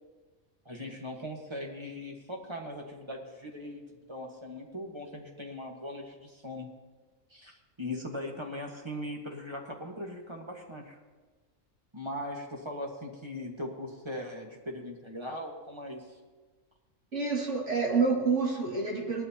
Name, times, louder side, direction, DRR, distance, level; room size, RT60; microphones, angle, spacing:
voice 1, 0.6-3.8 4.1-6.7 7.3-11.0 11.9-16.0, left 1 dB, 20° right, -1 dB, 1.5 m, -39 dB
voice 2, 17.1-19.2, right 4 dB, 65° right, -2 dB, 2.8 m, -28 dB
18.5 x 12.0 x 2.9 m, 1.3 s
omnidirectional pair, 1.3 m